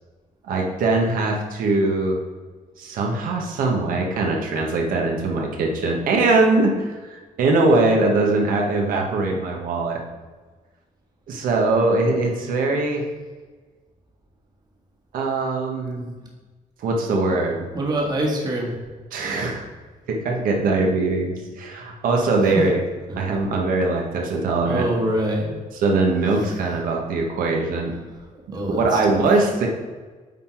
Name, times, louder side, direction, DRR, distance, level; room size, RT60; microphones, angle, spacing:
voice 1, 0.4-2.2 2.8-10.0 11.3-13.0 15.1-16.1 16.8-17.7 19.1-19.6 20.1-22.8 23.1-24.9 25.7-27.9 28.7-29.7, right 3 dB, 75° right, 0 dB, 1.2 m, -21 dB
voice 2, 17.7-18.7 24.6-25.5 28.5-29.2, right 1 dB, 30° right, -1 dB, 1.4 m, -24 dB
9.0 x 4.0 x 4.4 m, 1.4 s
cardioid pair, 160°, 14 cm